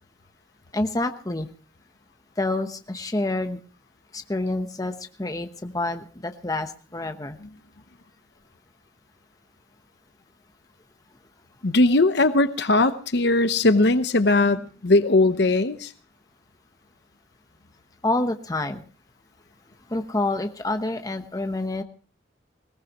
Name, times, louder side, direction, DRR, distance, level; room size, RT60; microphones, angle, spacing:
voice 1, 0.7-1.5 2.4-3.6 4.1-7.4 18.0-18.8 19.9-21.8, left 2 dB, 20° left, 7 dB, 1.0 m, -28 dB
voice 2, 11.6-15.9, left 2 dB, 65° left, 11 dB, 0.9 m, -19 dB
20.0 x 18.0 x 3.0 m, 0.38 s
head